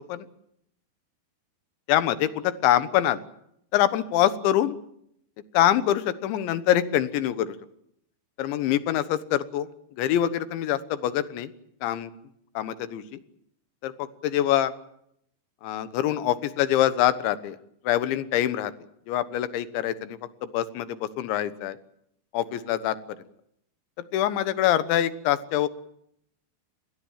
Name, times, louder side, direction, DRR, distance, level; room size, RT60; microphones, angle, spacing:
voice 1, 1.9-3.2 3.7-4.8 5.5-7.6 8.4-9.7 10.0-11.5 11.8-12.1 12.6-13.2 13.8-14.7 15.6-17.6 17.9-18.7 19.1-21.8 22.3-23.0 24.1-25.7, left 12 dB, 85° left, 13 dB, 3.5 m, -24 dB
26.5 x 21.0 x 7.5 m, 0.74 s
omnidirectional pair, 5.1 m